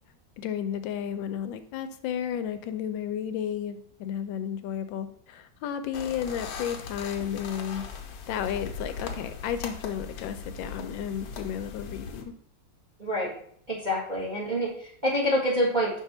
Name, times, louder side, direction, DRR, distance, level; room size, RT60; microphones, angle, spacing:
voice 1, 0.4-7.8 8.3-12.3, left 9 dB, 85° left, 10 dB, 1.4 m, -33 dB
sound 1, 5.9-12.2, left 5 dB, 70° left, 1.3 m, -39 dB
voice 2, 13.0-13.3 13.7-16.0, equal, 25° right, -4 dB, 1.5 m, -27 dB
5.6 x 3.6 x 5.4 m, 0.62 s
omnidirectional pair, 2.0 m